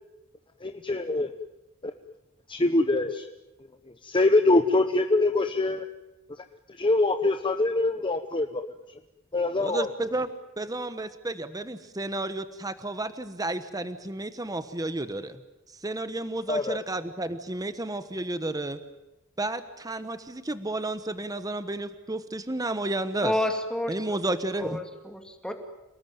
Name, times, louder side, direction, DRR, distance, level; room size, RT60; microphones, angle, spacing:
voice 1, 0.6-1.3 1.8-1.9 2.5-3.3 4.0-5.8 6.7-8.6 9.3-9.9 16.5-16.8, left 2 dB, 25° left, 7 dB, 1.0 m, -24 dB
voice 2, 9.6-15.4 15.8-18.8 19.4-23.3 23.9-24.8, right 2 dB, 15° right, 11 dB, 1.1 m, -32 dB
voice 3, 23.2-24.0 24.6-25.5, left 1 dB, 5° left, 5 dB, 2.7 m, -29 dB
28.5 x 19.5 x 9.3 m, 0.97 s
head